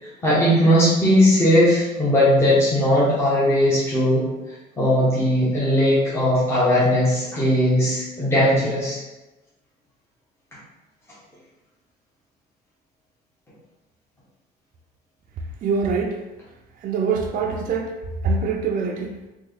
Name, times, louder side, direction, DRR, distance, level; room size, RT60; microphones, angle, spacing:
voice 1, 0.0-4.3 4.8-9.0, equal, 15° left, -9 dB, 0.9 m, -18 dB
voice 2, 15.6-16.1 16.8-17.9 18.2-19.2, right 4 dB, 55° right, 1 dB, 0.4 m, -23 dB
3.5 x 2.3 x 3.3 m, 1.0 s
cardioid pair, 110°, 17 cm